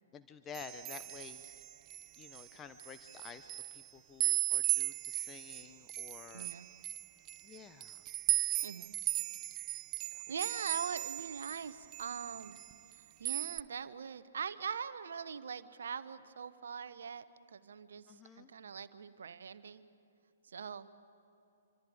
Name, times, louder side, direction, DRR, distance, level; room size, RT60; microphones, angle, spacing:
voice 1, 0.1-1.6 2.2-6.5 7.4-8.0 10.1-10.2 18.1-18.5, left 7 dB, 20° left, 9 dB, 0.7 m, -51 dB
sound 1, 0.5-2.4 2.8-3.8 4.2-11.6 11.9-12.9 13.2-13.6, right 17 dB, 30° right, 0.4 m, -36 dB
voice 2, 6.3-6.7 8.6-8.9 10.3-12.6 12.9-19.9 20.4-20.9, right 6 dB, 65° right, 13 dB, 0.9 m, -42 dB
27.0 x 25.5 x 4.9 m, 2.8 s
figure-of-eight pair, 120°, 0 cm